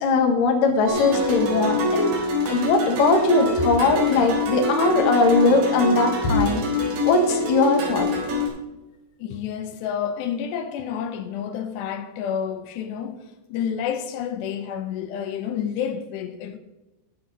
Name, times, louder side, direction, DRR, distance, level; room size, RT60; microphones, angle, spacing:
voice 1, 0.0-2.1 2.5-6.6 7.0-8.1, left 3 dB, 60° left, 2.6 m, -20 dB
sound 1, 0.9-8.5, left 2 dB, 75° right, 5.4 m, -24 dB
voice 2, 9.2-16.6, left 8 dB, 75° left, 2.9 m, -29 dB
12.0 x 11.5 x 4.1 m
omnidirectional pair, 5.3 m